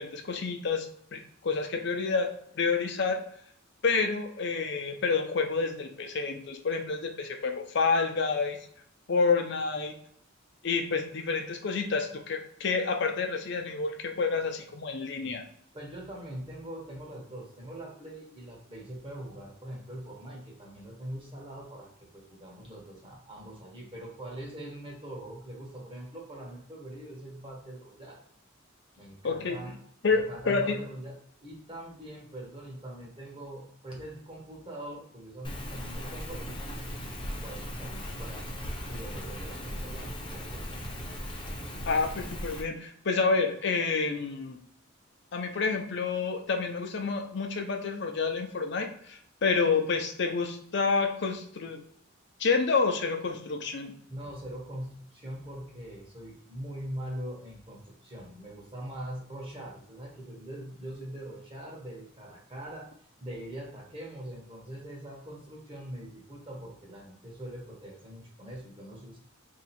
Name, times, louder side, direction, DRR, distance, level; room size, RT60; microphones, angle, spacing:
voice 1, 0.0-3.2 3.8-8.6 9.1-9.9 10.6-15.4 29.2-29.6 30.0-30.8 41.9-44.6 45.3-51.8 52.4-53.9, left 4 dB, 60° left, 4 dB, 0.6 m, -29 dB
voice 2, 15.7-28.2 29.0-29.8 30.1-37.0 37.4-38.5 38.9-40.9 54.1-69.2, right 1 dB, 25° right, -1 dB, 1.1 m, -42 dB
Rain, 35.4-42.6, equal, 25° left, 0.7 m, -38 dB
2.8 x 2.4 x 4.2 m, 0.65 s
head